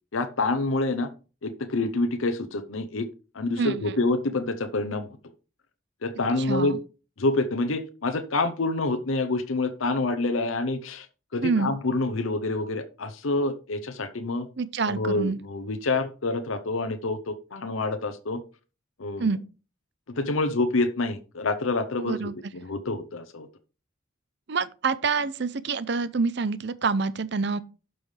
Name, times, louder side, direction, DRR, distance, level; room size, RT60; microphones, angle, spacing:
voice 1, 0.1-1.1 1.4-3.1 3.3-5.1 6.0-6.8 7.2-11.1 11.3-14.5 14.9-18.4 19.0-19.3 20.1-23.5, left 2 dB, 85° left, 0.8 m, -27 dB
voice 2, 3.6-3.9 6.5-6.8 11.4-11.7 14.6-15.4 19.2-19.4 22.0-22.3 24.5-27.6, right 4 dB, 55° right, 0.6 m, -27 dB
12.0 x 5.6 x 3.3 m
head